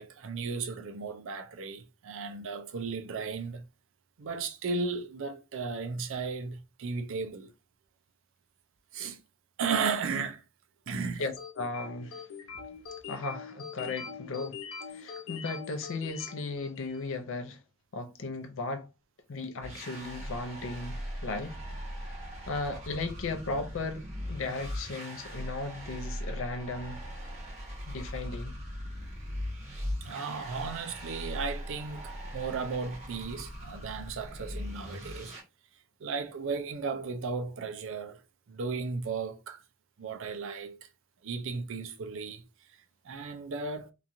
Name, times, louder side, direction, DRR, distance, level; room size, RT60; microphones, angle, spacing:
voice 1, 0.0-3.6 4.2-7.5 8.9-9.2 9.6-10.4 10.9-11.2 30.0-35.3 36.0-38.2 38.5-39.6 40.0-40.9 41.2-42.4 43.0-43.9, right 4 dB, 65° right, 0.5 m, -35 dB
voice 2, 11.2-12.3 13.1-14.6 14.9-17.6 17.9-18.9 19.3-21.6 22.1-22.2 22.5-27.0 27.9-28.5, left 3 dB, 65° left, 0.6 m, -36 dB
sound 1, 11.4-17.1, left 6 dB, 90° left, 0.9 m, -43 dB
sound 2, 19.6-35.4, equal, 30° right, 1.2 m, -40 dB
2.9 x 2.4 x 2.6 m
head